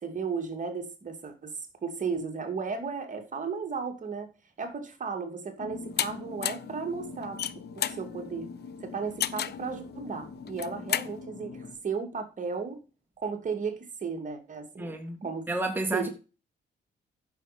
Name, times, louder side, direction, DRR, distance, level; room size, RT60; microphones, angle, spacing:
voice 1, 0.0-1.5 1.8-4.3 4.6-7.4 7.8-8.5 8.8-12.8 13.2-15.0 15.2-15.4 15.9-16.1, right 5 dB, 40° right, 2.4 m, -34 dB
sound 1, 5.6-11.7, left 4 dB, 75° left, 4.6 m, -43 dB
sound 2, 6.0-6.1 6.4-6.7 7.2-8.0 9.2-9.6 10.5-11.1, left 10 dB, 55° left, 0.7 m, -30 dB
voice 2, 14.8-15.2 15.5-16.1, right 2 dB, 10° right, 2.0 m, -30 dB
9.7 x 6.6 x 5.0 m
cardioid pair, 90°, 20 cm